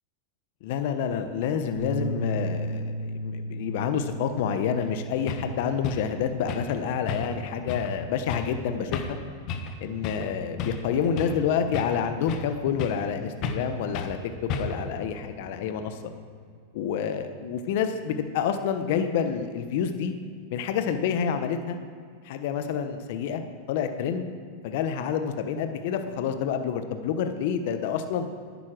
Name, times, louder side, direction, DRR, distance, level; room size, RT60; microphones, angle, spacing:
voice 1, 0.6-9.2 9.8-16.0 16.7-20.1 20.5-21.8 22.2-23.4 23.7-24.2 24.6-28.3, left 7 dB, 65° left, 8 dB, 1.0 m, -28 dB
sound 1, 1.8-8.0, equal, 85° left, 1.8 m, -36 dB
sound 2, 4.8-4.9 5.3-5.5 5.8-6.1 6.5-6.8 7.1-7.4 7.7-7.9 8.3-8.5 8.9-9.2 9.5-9.7 10.0-10.3 10.6-11.4 11.7-12.5 12.8-13.1 13.4-13.7 13.9-14.2 14.5-14.9, left 5 dB, 45° left, 1.3 m, -33 dB
9.8 x 9.2 x 6.1 m, 2.1 s
hypercardioid pair, 120°, 0 cm